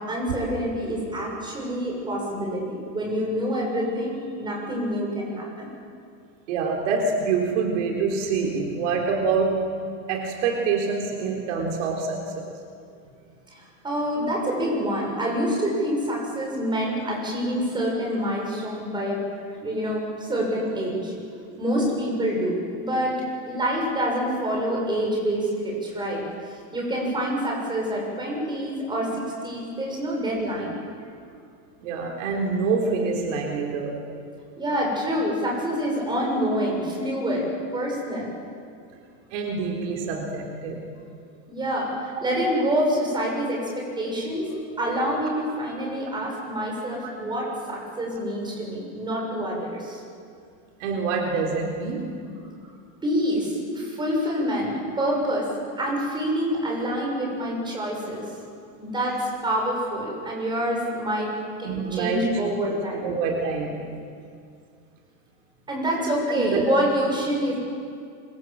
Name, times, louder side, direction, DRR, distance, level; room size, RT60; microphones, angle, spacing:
voice 1, 0.0-5.7 13.6-19.2 19.6-21.1 21.6-23.1 23.4-26.2 26.7-30.7 34.6-37.5 37.7-38.3 41.5-50.0 53.0-55.5 55.8-58.4 58.8-61.3 61.6-63.0 65.7-67.6, equal, 10° right, -2 dB, 7.0 m, -27 dB
voice 2, 6.5-12.5 31.8-34.0 39.3-40.9 47.0-47.1 50.8-52.2 61.6-62.7 63.0-63.9 66.4-66.6, right 4 dB, 60° right, 1 dB, 3.9 m, -26 dB
26.5 x 25.0 x 7.7 m, 2.3 s
supercardioid pair, 170°, 41 cm